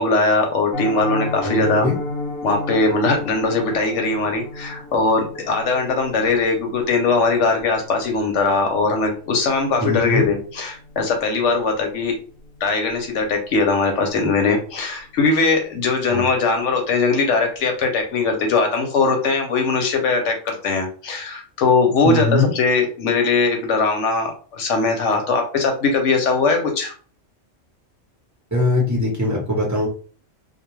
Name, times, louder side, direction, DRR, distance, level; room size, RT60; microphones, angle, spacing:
voice 1, 0.0-1.9 2.4-12.2 12.6-26.9, left 4 dB, 70° left, 3 dB, 0.9 m, -20 dB
Piano, 0.7-11.6 11.9-12.1 12.4-12.6 12.9-13.2 13.5-13.6, left 2 dB, 30° left, 0.9 m, -33 dB
voice 2, 1.4-2.0 9.8-10.2 16.1-16.2 22.0-22.5 28.5-29.9, left 2 dB, 15° right, -4 dB, 0.7 m, -21 dB
2.3 x 2.2 x 3.0 m, 0.40 s
omnidirectional pair, 1.3 m